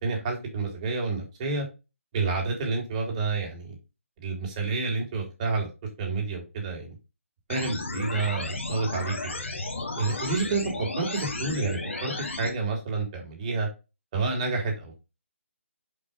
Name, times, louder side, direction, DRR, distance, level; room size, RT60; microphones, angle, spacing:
voice 1, 0.0-1.6 2.1-3.8 4.2-5.7 6.0-7.0 7.5-9.4 10.0-12.1 12.4-13.7 14.1-14.9, right 3 dB, 30° right, 1 dB, 3.2 m, -29 dB
sound 1, 7.5-12.5, left 2 dB, 60° left, 2.2 m, -33 dB
6.1 x 5.5 x 5.0 m, 0.28 s
figure-of-eight pair, 145°, 7 cm